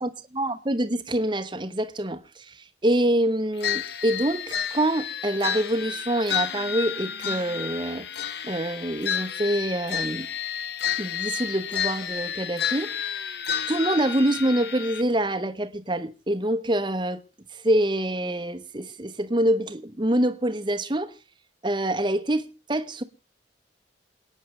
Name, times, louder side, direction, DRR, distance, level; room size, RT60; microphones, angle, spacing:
voice 1, 0.4-8.1 8.4-10.3 11.0-13.0 13.7-17.2 17.5-21.1 21.6-23.0, right 1 dB, 25° right, 1.0 m, -26 dB
sound 1, 3.6-15.0, left 8 dB, 60° left, 0.9 m, -31 dB
28.0 x 9.4 x 3.2 m
head